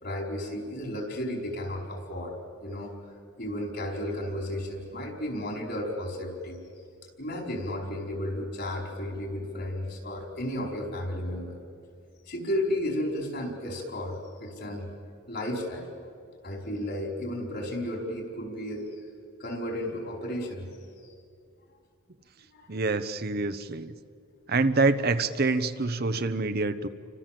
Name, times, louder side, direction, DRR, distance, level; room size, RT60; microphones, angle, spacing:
voice 1, 0.0-2.3 2.6-2.9 3.4-6.6 7.2-11.6 12.3-14.9 15.3-15.9 16.4-19.1 19.4-20.6 22.5-22.7 26.1-26.3, left 1 dB, 50° left, 2 dB, 5.0 m, -33 dB
voice 2, 22.7-23.9 24.5-26.9, right 3 dB, 50° right, 10 dB, 0.9 m, -26 dB
29.5 x 25.0 x 7.7 m, 2.3 s
head